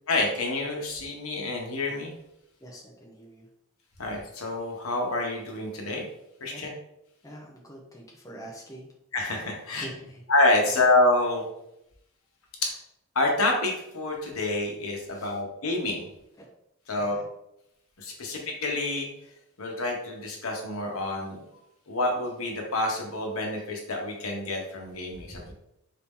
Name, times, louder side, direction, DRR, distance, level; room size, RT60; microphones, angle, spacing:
voice 1, 0.1-2.1 4.0-6.0 6.4-6.7 9.1-9.9 10.3-11.5 12.6-12.7 13.1-16.1 16.9-17.2 18.0-19.1 19.6-21.4 21.9-25.5, left 2 dB, 75° left, 0 dB, 1.1 m, -27 dB
voice 2, 2.6-3.4 6.5-6.6 7.2-8.9 9.8-10.1 17.1-17.2, right 1 dB, 15° left, -2 dB, 0.6 m, -44 dB
4.1 x 2.8 x 3.6 m, 0.81 s
head